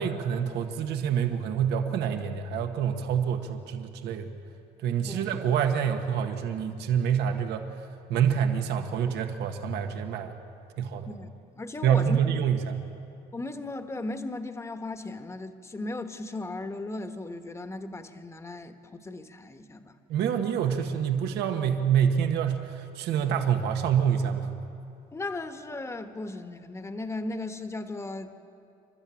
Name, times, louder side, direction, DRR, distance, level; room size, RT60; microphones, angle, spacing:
voice 1, 0.0-4.3 4.8-7.6 8.1-10.3 10.8-11.1 11.8-12.8 20.1-24.5, right 8 dB, 80° right, 5 dB, 1.6 m, -26 dB
voice 2, 11.5-12.2 13.3-19.9 25.1-28.4, left 2 dB, 15° left, 8 dB, 1.2 m, -36 dB
28.5 x 12.5 x 8.7 m, 2.7 s
cardioid pair, 110°, 17 cm